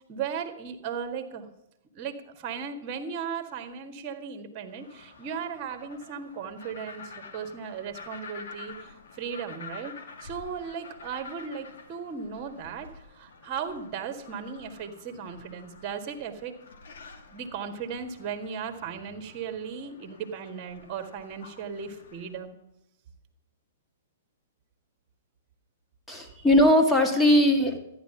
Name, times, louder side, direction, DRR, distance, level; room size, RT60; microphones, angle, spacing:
voice 1, 0.1-1.5 1.9-9.9 10.2-16.5 17.3-22.6, right 6 dB, 35° right, 7 dB, 1.7 m, -36 dB
sound 1, 4.7-22.4, left 4 dB, 60° left, 2.2 m, -48 dB
voice 2, 26.1-27.8, left 1 dB, 5° left, 2 dB, 1.8 m, -20 dB
13.5 x 10.0 x 5.8 m, 0.83 s
figure-of-eight pair, 110°, 0 cm